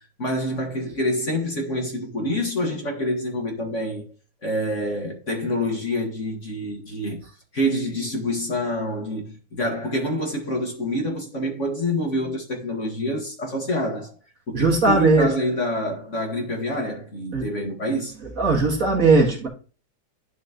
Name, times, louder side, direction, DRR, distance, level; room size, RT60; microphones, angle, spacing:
voice 1, 0.2-4.0 4.4-7.2 7.5-14.1 14.5-18.1, equal, 40° left, 2.1 m, -26 dB
voice 2, 14.5-15.3 17.3-17.5 18.4-19.5, right 3 dB, 45° right, 2.2 m, -18 dB
11.0 x 5.9 x 3.0 m
omnidirectional pair, 2.1 m